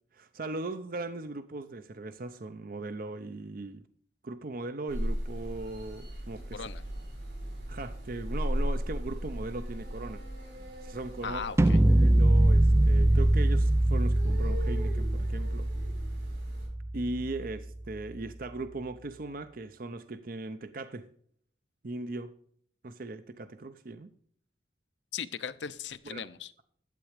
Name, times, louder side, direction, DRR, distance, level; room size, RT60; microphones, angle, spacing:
voice 1, 0.1-3.9 4.2-6.7 7.7-10.2 10.8-11.4 11.9-15.7 16.9-21.1 21.8-22.3 22.8-24.1 26.0-26.2, right 2 dB, 55° right, 11 dB, 0.6 m, -38 dB
sound 1, 4.9-16.7, equal, 70° right, 5.5 m, -37 dB
voice 2, 6.5-6.8 11.2-11.8 25.1-26.5, left 7 dB, 85° left, 12 dB, 0.7 m, -38 dB
sound 2, 11.6-17.6, right 1 dB, 15° right, 0.4 m, -24 dB
12.0 x 8.2 x 4.9 m, 0.62 s
head